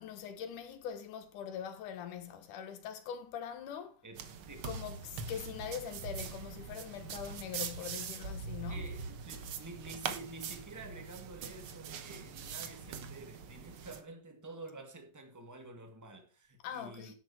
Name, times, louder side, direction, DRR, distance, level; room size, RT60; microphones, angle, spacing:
voice 1, 0.0-4.0 4.6-8.9 16.6-17.1, left 9 dB, 90° left, 2.9 m, -42 dB
voice 2, 4.0-4.7 8.7-17.1, right 2 dB, 10° right, 1.4 m, -49 dB
sound 1, 4.1-14.0, right 6 dB, 60° right, 1.6 m, -42 dB
11.0 x 8.7 x 4.4 m
omnidirectional pair, 3.5 m